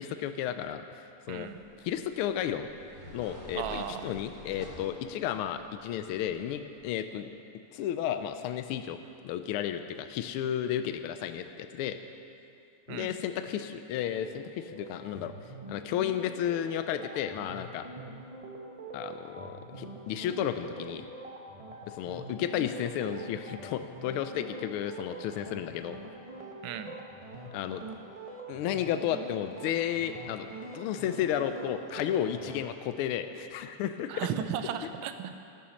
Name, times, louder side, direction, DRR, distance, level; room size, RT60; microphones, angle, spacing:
voice 1, 0.0-1.5 1.8-2.7 3.1-7.3 7.7-9.0 9.2-12.0 12.9-15.3 15.7-17.9 18.9-21.1 21.9-26.0 27.5-27.8 28.5-30.5 30.7-34.3, left 10 dB, 85° left, 9 dB, 1.5 m, -33 dB
sound 1, 1.3-6.8, equal, 55° right, 3.2 m, -50 dB
voice 2, 1.3-1.6 3.5-4.1 12.9-13.1 26.6-26.9 34.1-35.4, right 9 dB, 75° right, 8 dB, 1.3 m, -35 dB
sound 2, 14.0-32.6, right 2 dB, 25° right, 0.7 m, -45 dB
17.5 x 7.1 x 6.3 m, 2.6 s
omnidirectional pair, 2.3 m